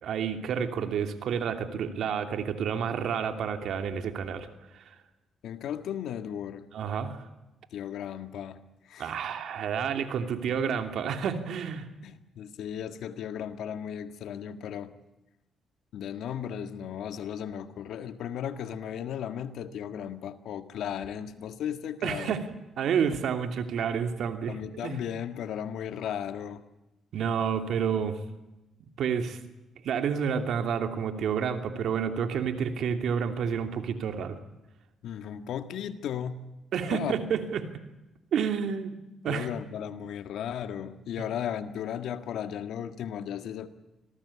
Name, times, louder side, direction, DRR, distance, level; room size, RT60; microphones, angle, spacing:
voice 1, 0.0-4.5 4.7-4.8 6.7-7.2 9.0-11.9 22.0-22.5 22.8-24.6 24.8-25.0 27.1-28.2 28.8-29.4 29.8-34.4 36.7-37.7 38.3-39.0 39.2-39.5 41.2-41.3, right 7 dB, 70° right, 2.8 m, -29 dB
voice 2, 5.4-6.7 7.7-8.6 8.9-9.2 12.0-14.9 15.9-22.4 24.5-26.6 35.0-36.5 36.9-37.2 39.3-43.7, left 9 dB, 75° left, 1.8 m, -35 dB
26.0 x 19.0 x 8.6 m
cardioid pair, 90°, 0 cm